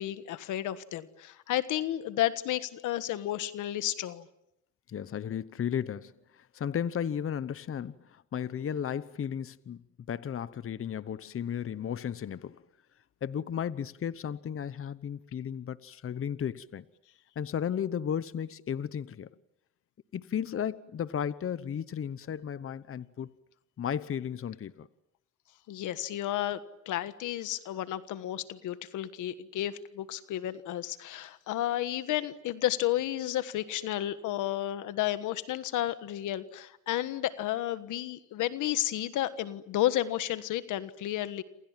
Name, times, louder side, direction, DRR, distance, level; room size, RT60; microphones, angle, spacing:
voice 1, 0.0-4.3 25.7-41.4, left 13 dB, 90° left, 1.5 m, -32 dB
voice 2, 4.9-12.6 13.2-16.8 17.4-19.3 20.1-23.3 23.8-24.9, left 8 dB, 45° left, 1.0 m, -34 dB
28.5 x 27.5 x 7.5 m
cardioid pair, 90°, 30 cm